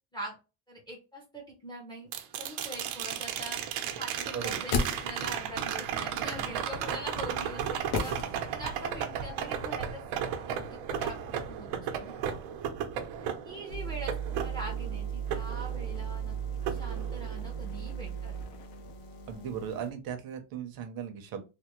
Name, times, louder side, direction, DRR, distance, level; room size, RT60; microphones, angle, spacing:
voice 1, 0.7-10.0 10.4-12.4 13.2-16.3 16.7-18.4, right 1 dB, 10° left, -3 dB, 0.6 m, -43 dB
sound 1, 2.1-16.2 16.7-17.7 19.9-20.0, right 8 dB, 90° right, 0.8 m, -35 dB
sound 2, 4.3-5.5 7.9-8.8 9.1-9.2, left 4 dB, 70° left, 0.9 m, -33 dB
sound 3, 13.7-19.9, right 8 dB, 50° left, 0.7 m, -37 dB
voice 2, 19.3-21.4, right 8 dB, 45° right, 6 dB, 0.7 m, -37 dB
3.3 x 2.1 x 2.9 m, 0.29 s
cardioid pair, 175°, 50 cm